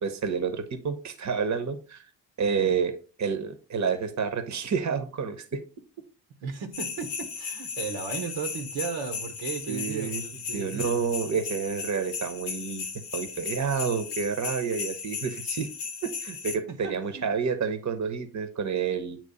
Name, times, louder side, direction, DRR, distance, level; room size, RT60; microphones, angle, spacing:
voice 1, 0.0-2.0 2.4-2.9 3.2-5.6 9.7-10.2 10.5-12.9 13.1-15.7 16.0-19.2, right 6 dB, 35° right, 1.1 m, -29 dB
voice 2, 6.4-11.1 16.7-17.3, right 6 dB, 65° right, 1.2 m, -36 dB
sound 1, 6.7-16.6, left 6 dB, 90° left, 0.8 m, -36 dB
8.8 x 3.0 x 4.1 m
hypercardioid pair, 40°, 49 cm